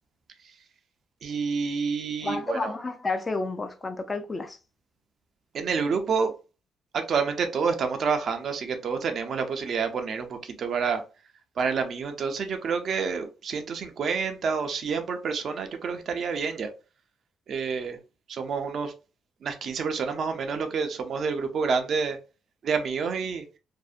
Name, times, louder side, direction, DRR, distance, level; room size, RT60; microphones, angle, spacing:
voice 1, 1.2-2.7 5.5-6.3 6.9-11.0 11.6-16.7 17.5-18.0 18.3-18.9 19.4-22.2 22.6-23.4, right 5 dB, 60° right, 0.4 m, -28 dB
voice 2, 2.2-4.6, left 3 dB, 25° left, 0.4 m, -30 dB
2.6 x 2.0 x 2.4 m
cardioid pair, 90°, 0 cm